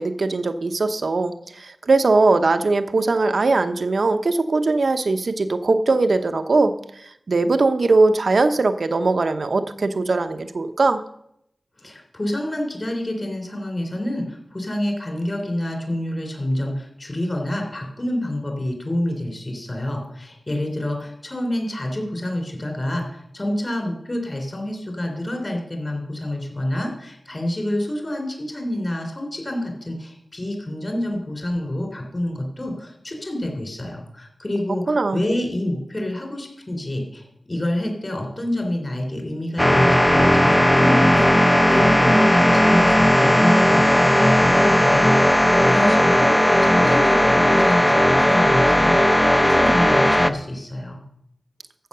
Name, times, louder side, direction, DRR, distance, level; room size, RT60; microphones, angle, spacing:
voice 1, 0.0-6.7 7.3-11.0 34.9-35.2, right 3 dB, 65° right, 8 dB, 0.9 m, -20 dB
voice 2, 11.8-51.0, left 1 dB, 35° left, 2 dB, 3.6 m, -28 dB
sound 1, 39.6-50.3, left 1 dB, 15° left, 0.8 m, -16 dB
14.5 x 5.8 x 6.8 m, 0.75 s
wide cardioid pair, 65°, 0 cm